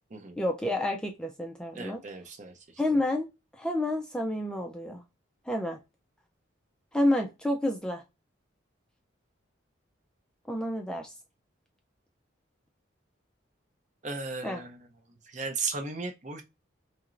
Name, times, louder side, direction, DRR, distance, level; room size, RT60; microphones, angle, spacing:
voice 1, 0.4-2.0 2.8-3.3 3.6-5.0 5.5-5.8 6.9-8.0 10.5-11.1 14.4-14.6, left 1 dB, 5° left, 0.4 m, -29 dB
voice 2, 1.8-2.5 14.0-14.8 15.3-16.4, right 4 dB, 40° right, 0.6 m, -35 dB
4.3 x 2.9 x 2.5 m
head